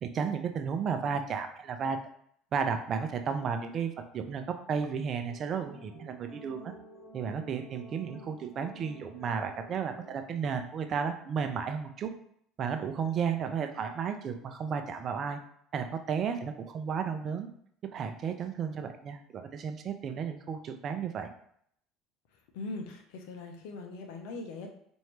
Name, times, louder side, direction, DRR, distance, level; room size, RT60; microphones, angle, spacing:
voice 1, 0.0-2.0 2.5-6.7 7.1-12.1 12.6-15.4 15.7-17.5 17.9-21.3, right 6 dB, 45° right, 7 dB, 0.5 m, -33 dB
sound 1, 5.2-10.2, equal, 50° left, 1.5 m, -51 dB
voice 2, 22.5-24.7, left 3 dB, 75° left, 3 dB, 0.7 m, -40 dB
4.3 x 2.7 x 3.2 m, 0.67 s
hypercardioid pair, 75°, 0 cm